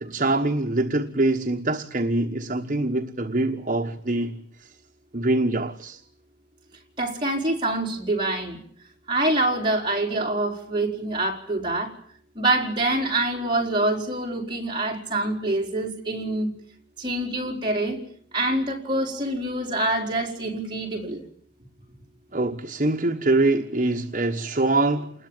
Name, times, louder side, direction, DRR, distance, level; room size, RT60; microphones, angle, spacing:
voice 1, 0.0-4.7 5.1-6.0 22.3-25.1, right 2 dB, 40° right, 1.2 m, -24 dB
voice 2, 7.0-8.6 9.1-11.9 12.3-16.5 17.0-18.0 18.3-21.2, right 2 dB, 25° right, 4.7 m, -25 dB
28.5 x 21.0 x 9.2 m
head